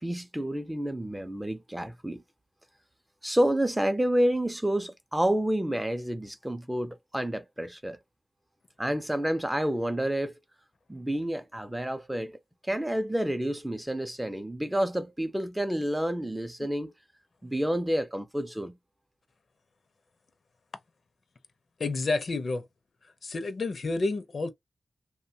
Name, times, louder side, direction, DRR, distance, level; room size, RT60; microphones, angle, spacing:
voice 1, 0.0-2.2 3.2-8.0 8.8-10.3 10.9-12.4 12.6-16.9 17.4-18.8, right 1 dB, 10° right, 0.5 m, -29 dB
voice 2, 21.8-22.6 23.2-24.5, left 3 dB, 60° left, 0.6 m, -29 dB
2.9 x 2.2 x 2.6 m
wide cardioid pair, 90°, 0 cm